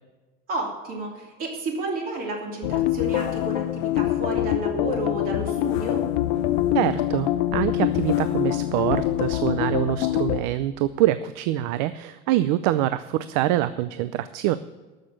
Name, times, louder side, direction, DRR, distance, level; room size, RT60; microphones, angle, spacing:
voice 1, 0.5-6.0, right 2 dB, 45° right, 1 dB, 3.0 m, -31 dB
sound 1, 2.6-10.4, left 13 dB, 90° left, 0.8 m, -24 dB
voice 2, 6.7-14.6, right 14 dB, 85° right, 13 dB, 0.5 m, -25 dB
13.0 x 6.6 x 7.5 m, 1.2 s
cardioid pair, 155°, 21 cm